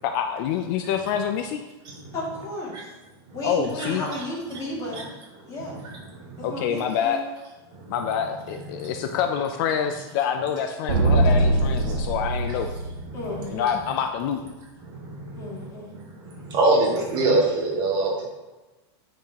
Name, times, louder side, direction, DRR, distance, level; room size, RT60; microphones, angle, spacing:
voice 1, 0.0-1.6 3.4-4.1 6.4-7.2 7.9-12.7 13.5-14.4, left 8 dB, 50° left, 6 dB, 0.5 m, -26 dB
voice 2, 2.1-2.9 3.3-5.0 5.5-5.8 6.4-7.3 13.1-13.7 15.4-15.9, left 1 dB, 25° left, -5 dB, 2.3 m, -33 dB
voice 3, 6.1-6.5 7.8-7.9 8.7-8.9 11.9-12.0 13.1-13.2 14.8-18.2, right 2 dB, 35° right, -4 dB, 2.2 m, -25 dB
sound 1, 10.9-13.6, right 2 dB, 70° right, 1.4 m, -22 dB
8.4 x 6.0 x 2.9 m, 1.1 s
supercardioid pair, 155°, 14 cm